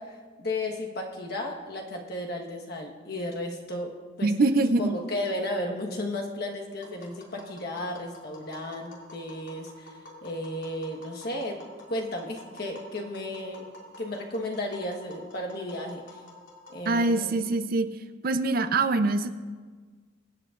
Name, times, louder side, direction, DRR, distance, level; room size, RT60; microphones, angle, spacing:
voice 1, 0.0-4.3 4.8-11.6 11.9-13.7 14.0-16.2 16.7-17.3, left 1 dB, 55° left, 1 dB, 1.3 m, -34 dB
voice 2, 4.2-5.0 16.9-17.9 18.2-19.3, right 2 dB, 50° right, 10 dB, 0.5 m, -24 dB
Tap, 6.8-17.3, left 1 dB, 85° left, 2.5 m, -49 dB
23.5 x 7.9 x 2.5 m, 1.5 s
head